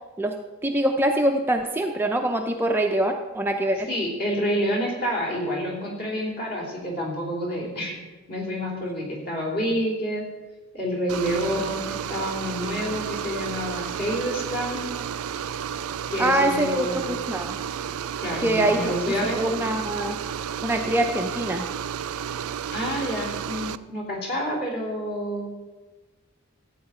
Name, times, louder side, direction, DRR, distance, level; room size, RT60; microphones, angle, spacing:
voice 1, 0.6-3.9 16.2-17.6 18.4-18.9 19.4-20.2 20.6-21.6, right 1 dB, 10° right, 3 dB, 0.5 m, -24 dB
voice 2, 3.9-8.0 8.3-10.2 10.7-14.9 16.1-17.2 18.2-19.4 22.7-25.5, equal, 45° left, -2 dB, 3.3 m, -28 dB
sound 1, 11.1-23.8, right 8 dB, 85° right, 0.4 m, -32 dB
14.0 x 8.8 x 4.3 m, 1.2 s
head